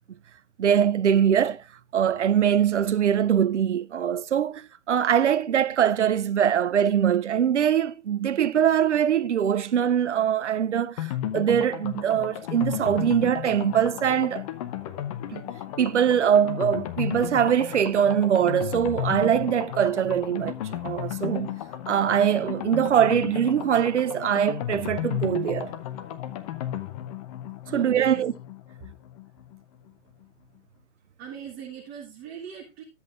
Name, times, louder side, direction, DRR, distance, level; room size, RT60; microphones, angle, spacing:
voice 1, 0.6-1.6 1.9-14.4 15.3-15.4 15.8-21.6 21.9-25.7 27.7-28.3, right 9 dB, 70° right, 0.6 m, -22 dB
sound 1, 11.0-29.6 29.9-30.0 30.2-30.3, left 11 dB, 30° left, 0.7 m, -34 dB
voice 2, 27.7-28.2 31.2-32.8, right 9 dB, 25° right, 1.4 m, -39 dB
13.0 x 8.2 x 2.4 m
figure-of-eight pair, 120°, 37 cm